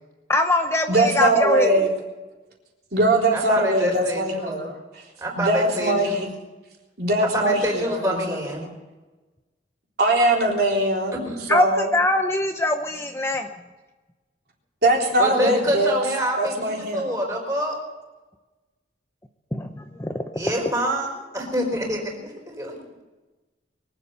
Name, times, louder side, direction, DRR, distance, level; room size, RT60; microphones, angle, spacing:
voice 1, 0.3-1.8 11.5-13.5 19.5-20.2, left 1 dB, 15° left, 5 dB, 0.8 m, -22 dB
voice 2, 0.9-1.9 2.9-4.8 5.4-6.3 7.0-8.7 10.0-11.2 11.5-11.9 14.8-15.9 16.4-17.0, right 1 dB, 55° right, -2 dB, 3.8 m, -21 dB
voice 3, 3.3-4.6 5.2-6.3 7.3-8.7 11.2-11.5 15.2-17.8 20.3-22.7, equal, 15° right, 0 dB, 4.5 m, -27 dB
23.0 x 8.3 x 6.8 m, 1.2 s
head